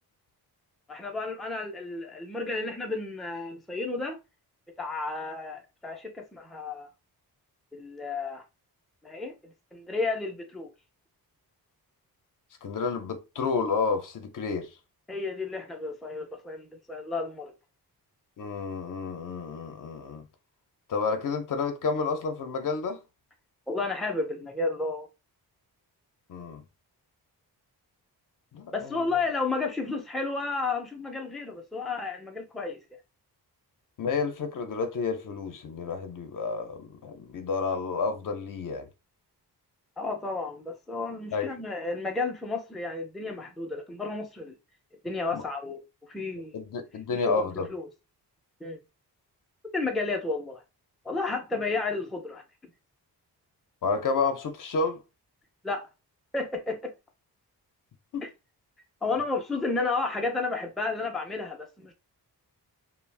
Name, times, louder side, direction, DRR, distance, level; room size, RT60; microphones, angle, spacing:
voice 1, 0.9-4.2 4.8-6.9 7.7-8.4 9.0-10.7 15.1-17.5 23.7-25.1 28.7-32.8 40.0-44.5 45.0-45.8 46.1-46.5 47.1-47.3 47.7-47.8 48.6-48.8 49.7-50.6 51.0-52.4 55.6-55.9 56.3-56.9 58.2-58.3 59.0-61.9, left 3 dB, ahead, 0.4 m, -32 dB
voice 2, 12.6-14.8 18.4-20.3 20.9-23.0 26.3-26.6 28.5-29.2 34.0-38.9 41.3-41.6 45.3-45.4 46.5-47.7 53.8-55.0 58.1-58.2, left 4 dB, 55° left, 0.6 m, -30 dB
2.3 x 2.1 x 3.2 m
wide cardioid pair, 145°, 39 cm